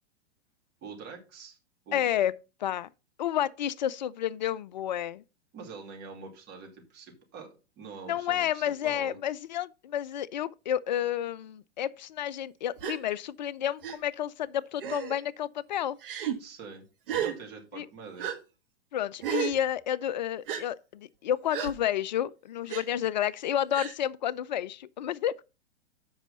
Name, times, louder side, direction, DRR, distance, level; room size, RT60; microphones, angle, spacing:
voice 1, 0.8-1.6 1.9-2.0 5.5-7.5 7.8-9.2 16.4-18.3, right 5 dB, 30° right, 2.7 m, -45 dB
voice 2, 1.9-2.3 2.6-2.9 3.2-5.2 8.1-16.0 17.8-17.9 18.9-25.4, left 10 dB, 45° left, 0.4 m, -30 dB
Gasp, 12.8-13.0 13.8-14.0 14.8-15.2 16.0-16.4 17.1-17.3 18.2-18.4 19.2-19.6 20.5-20.6 21.5-21.7 22.7-22.8 23.7-23.9, right 10 dB, 55° right, 1.4 m, -32 dB
8.0 x 5.5 x 5.4 m
figure-of-eight pair, 105°, 33 cm